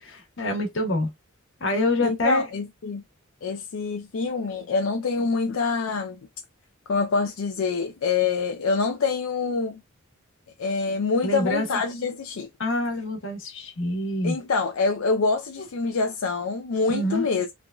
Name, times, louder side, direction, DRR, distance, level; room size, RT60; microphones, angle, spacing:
voice 1, 0.0-1.1 1.6-2.5 11.2-11.7 12.6-14.3 16.9-17.2, left 1 dB, 60° left, 1.2 m, -26 dB
voice 2, 2.0-3.0 3.4-6.2 6.9-9.8 10.6-12.5 14.2-17.5, left 4 dB, 80° left, 0.4 m, -26 dB
3.3 x 2.3 x 2.2 m
head